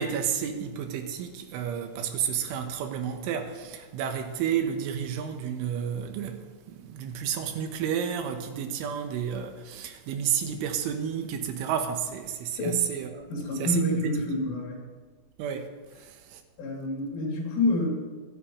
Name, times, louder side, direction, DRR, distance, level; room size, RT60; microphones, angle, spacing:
voice 1, 0.0-13.3 13.6-14.1 15.4-15.7 16.0-16.4, right 8 dB, 85° right, 3.5 m, -31 dB
voice 2, 13.3-14.8 16.6-17.9, left 2 dB, 85° left, 5.7 m, -28 dB
24.5 x 11.5 x 3.2 m
omnidirectional pair, 5.5 m